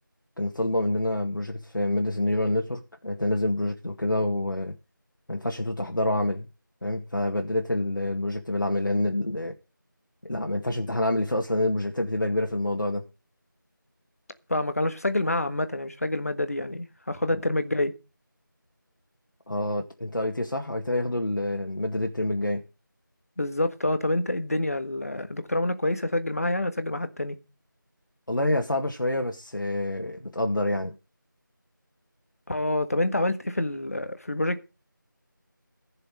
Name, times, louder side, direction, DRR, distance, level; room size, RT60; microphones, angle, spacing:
voice 1, 0.4-4.7 5.3-6.4 6.8-9.6 10.2-13.0 19.5-22.6 28.3-30.9, left 1 dB, 65° left, 2.1 m, -27 dB
voice 2, 14.5-17.9 23.4-27.4 32.5-34.7, left 1 dB, 45° left, 1.5 m, -27 dB
15.0 x 6.7 x 6.6 m
figure-of-eight pair, 175°, 11 cm